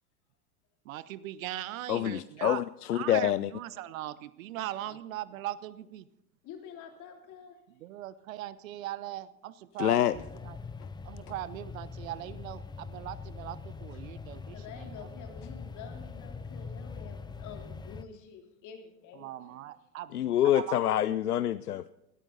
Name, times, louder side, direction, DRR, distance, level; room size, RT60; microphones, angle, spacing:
voice 1, 0.8-2.6 2.9-6.1 7.7-10.6 11.0-15.1 19.1-20.1 20.4-20.8 21.0-21.2, right 14 dB, 65° right, 0.9 m, -40 dB
voice 2, 1.9-3.5 9.8-10.1 20.1-21.9, left 12 dB, 85° left, 0.6 m, -26 dB
voice 3, 6.4-7.6 14.5-19.6, left 6 dB, 40° left, 3.2 m, -48 dB
sound 1, 10.1-18.0, left 5 dB, 10° left, 0.7 m, -43 dB
19.5 x 13.5 x 4.0 m
hypercardioid pair, 90°, 44 cm